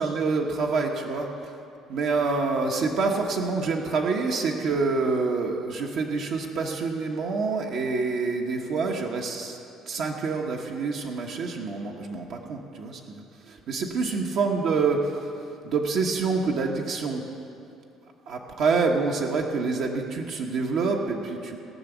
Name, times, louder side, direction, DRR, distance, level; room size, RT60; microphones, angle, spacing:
voice 1, 0.0-1.5 1.9-9.6 9.9-17.2 18.3-21.6, right 4 dB, 60° right, 1 dB, 1.1 m, -27 dB
18.0 x 6.1 x 8.0 m, 2.6 s
cardioid pair, 140°, 0 cm